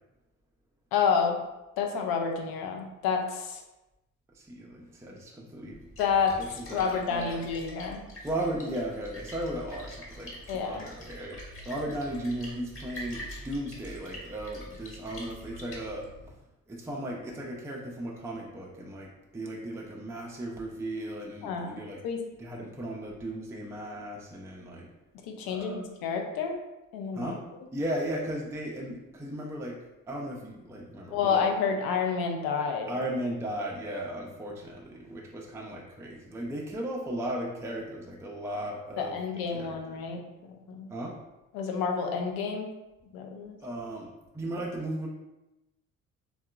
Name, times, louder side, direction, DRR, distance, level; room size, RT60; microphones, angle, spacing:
voice 1, 0.9-1.4 1.8-3.6 6.0-6.4 6.7-8.0 10.5-10.8 21.4-22.2 25.3-26.6 26.9-27.4 31.1-33.1 39.0-40.2 40.5-40.9 41.5-42.7 43.1-43.6, left 6 dB, 60° left, 3 dB, 0.6 m, -29 dB
voice 2, 4.3-5.9 6.4-7.5 8.2-16.3 16.7-22.0 22.4-24.9 25.4-25.8 27.1-31.4 32.9-39.2 39.5-40.0 40.9-41.2 43.6-44.1 44.3-45.1, right 1 dB, 5° right, -2 dB, 0.5 m, -36 dB
Splash splatter, 5.7-16.3, equal, 30° left, 1.2 m, -45 dB
3.5 x 2.3 x 2.2 m, 0.98 s
hypercardioid pair, 50°, 41 cm